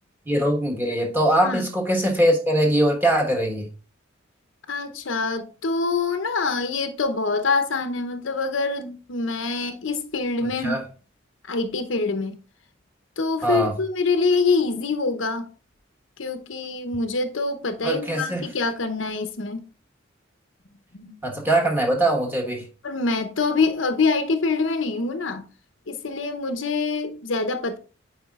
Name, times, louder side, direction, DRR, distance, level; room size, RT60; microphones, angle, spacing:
voice 1, 0.3-3.6 10.6-10.8 13.4-13.7 17.8-18.5 21.2-22.6, right 1 dB, 10° right, 1.3 m, -22 dB
voice 2, 4.7-10.7 11.5-12.3 13.2-15.5 16.2-19.6 20.9-21.2 22.8-25.4 25.9-27.8, left 4 dB, 80° left, 0.8 m, -25 dB
8.8 x 4.9 x 2.4 m
head